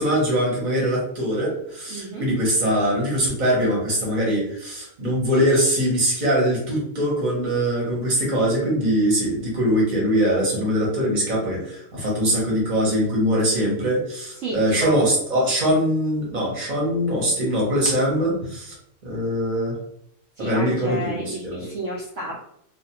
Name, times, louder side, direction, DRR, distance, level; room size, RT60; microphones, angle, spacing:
voice 1, 0.0-18.7 19.0-19.8 20.4-21.6, equal, 35° right, -4 dB, 1.0 m, -22 dB
voice 2, 1.9-2.3 14.3-14.9 20.4-22.4, right 1 dB, 65° right, -3 dB, 0.9 m, -31 dB
2.4 x 2.3 x 2.8 m, 0.73 s
omnidirectional pair, 1.5 m